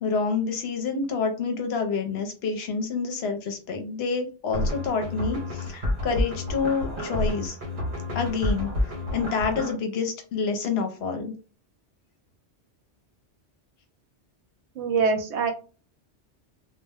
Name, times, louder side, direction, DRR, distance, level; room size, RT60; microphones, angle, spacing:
voice 1, 0.0-7.6 8.1-8.7 9.1-11.3, left 5 dB, 70° left, 5 dB, 0.8 m, -28 dB
sound 1, 4.5-9.7, left 1 dB, 50° right, 1.0 m, -29 dB
voice 2, 14.8-15.5, right 5 dB, 75° right, 6 dB, 0.9 m, -24 dB
2.2 x 2.1 x 3.4 m, 0.35 s
omnidirectional pair, 1.2 m